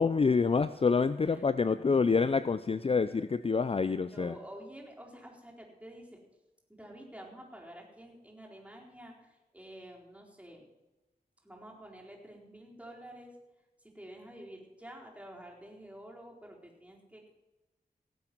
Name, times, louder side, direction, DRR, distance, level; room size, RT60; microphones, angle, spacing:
voice 1, 0.0-4.3, left 5 dB, 35° left, 13 dB, 0.4 m, -27 dB
voice 2, 4.1-6.2 6.7-10.7 11.4-13.4 13.8-17.3, right 1 dB, 5° right, -2 dB, 4.1 m, -49 dB
18.5 x 7.8 x 6.1 m, 1.1 s
cardioid pair, 60°, 16 cm